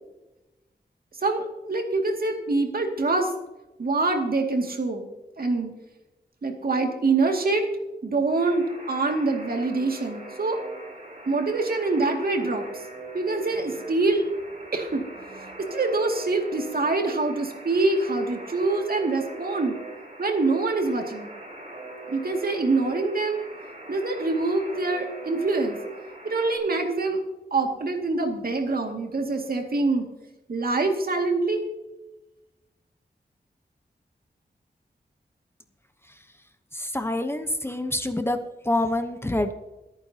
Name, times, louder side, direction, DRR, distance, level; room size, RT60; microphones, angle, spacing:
voice 1, 1.2-3.3 3.8-5.1 5.4-5.7 6.4-7.7 8.0-10.6 11.3-12.8 13.1-14.3 14.7-15.0 15.3-19.8 20.2-21.3 22.1-23.4 23.9-25.8 26.2-27.2 27.5-30.1 30.5-31.6, right 3 dB, 60° right, 3 dB, 2.3 m, -25 dB
Alarm, 8.4-26.6, right 2 dB, 40° right, 5.5 m, -41 dB
voice 2, 36.7-38.4 38.6-39.5, left 1 dB, 15° left, 8 dB, 0.9 m, -26 dB
26.0 x 9.1 x 2.9 m, 1.0 s
wide cardioid pair, 90°, 17 cm